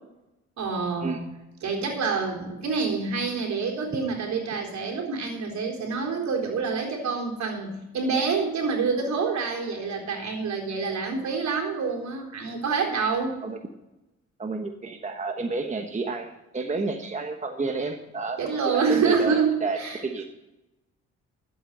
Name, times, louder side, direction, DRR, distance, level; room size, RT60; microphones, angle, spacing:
voice 1, 0.6-1.2 1.6-13.4 18.4-20.0, right 5 dB, 65° right, 1 dB, 3.9 m, -27 dB
voice 2, 14.4-18.4 18.7-20.2, right 3 dB, 25° right, 4 dB, 1.2 m, -31 dB
12.0 x 8.2 x 6.6 m, 0.96 s
cardioid pair, 90°, 30 cm